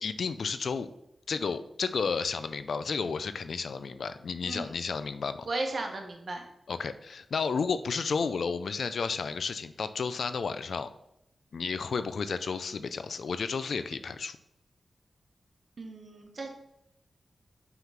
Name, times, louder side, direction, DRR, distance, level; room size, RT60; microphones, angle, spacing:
voice 1, 0.0-0.9 1.3-5.5 6.7-10.9 11.5-14.4, left 5 dB, 80° left, 12 dB, 0.4 m, -32 dB
voice 2, 4.4-4.7 5.4-6.4 15.8-16.5, right 2 dB, 55° right, 2 dB, 1.4 m, -35 dB
5.8 x 3.8 x 5.7 m, 0.79 s
wide cardioid pair, 70°, 0 cm